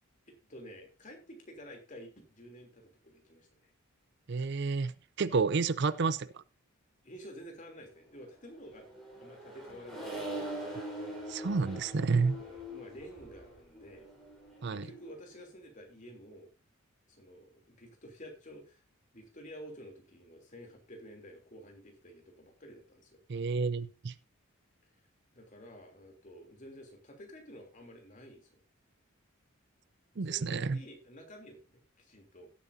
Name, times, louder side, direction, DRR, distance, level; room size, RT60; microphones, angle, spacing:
voice 1, 0.3-3.7 7.0-8.9 9.2-10.7 12.4-14.1 14.7-16.5 17.1-18.8 19.1-23.2 24.8-25.0 25.3-28.6 30.2-32.5, equal, 35° left, 3.2 m, -51 dB
voice 2, 4.3-6.4 11.3-12.4 14.6-14.9 23.3-24.1 30.2-30.8, right 4 dB, 55° right, 0.5 m, -30 dB
Accelerating revving vroom, 8.5-15.1, right 1 dB, ahead, 4.5 m, -43 dB
17.0 x 8.5 x 2.7 m
head